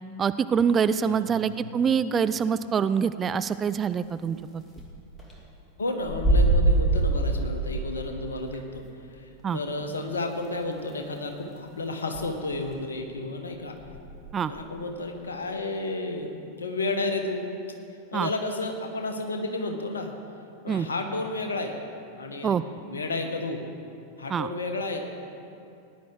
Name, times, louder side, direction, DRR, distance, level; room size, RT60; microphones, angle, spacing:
voice 1, 0.2-4.6 9.4-9.6 14.3-14.5 18.1-18.3 20.7-20.9 22.4-22.6 24.3-24.5, right 7 dB, 20° right, 13 dB, 0.3 m, -25 dB
voice 2, 1.1-1.5 5.8-8.8 9.1-13.8 14.5-17.5 18.1-20.1 20.6-21.8 22.2-22.6 22.8-23.6 24.2-25.1, left 2 dB, 70° left, 4 dB, 1.3 m, -32 dB
sound 1, 4.0-4.1 4.4-4.5 4.7-4.9 5.2-5.4 6.0-7.9 8.5-8.6 9.4-9.5 10.4-10.5 10.8-10.9 11.3-11.6 12.1-12.3 12.6-12.8 13.7-14.7, right 2 dB, 15° left, 2.5 m, -24 dB
18.0 x 10.5 x 3.9 m, 2.6 s
figure-of-eight pair, 90°, 0 cm